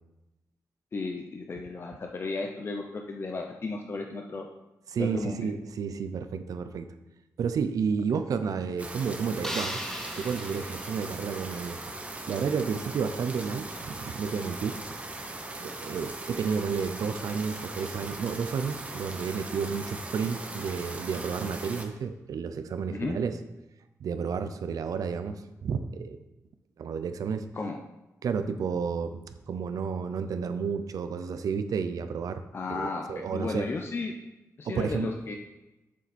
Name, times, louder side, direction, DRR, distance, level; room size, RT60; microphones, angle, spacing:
voice 1, 0.9-4.5 5.0-5.6 22.9-23.2 27.5-27.8 32.5-34.1 34.6-35.4, left 3 dB, 40° left, 2 dB, 0.6 m, -34 dB
voice 2, 4.9-6.9 7.4-9.8 10.2-11.8 12.3-14.8 15.6-23.4 24.0-26.2 26.8-27.5 28.2-29.2 29.5-32.4 32.7-33.7 34.6-35.1, right 6 dB, 75° right, 10 dB, 0.6 m, -31 dB
sound 1, 8.8-21.8, right 2 dB, 20° right, 0.8 m, -39 dB
sound 2, 9.4-11.7, equal, 10° left, 0.8 m, -38 dB
7.4 x 6.8 x 4.3 m, 0.99 s
wide cardioid pair, 145°, 6 cm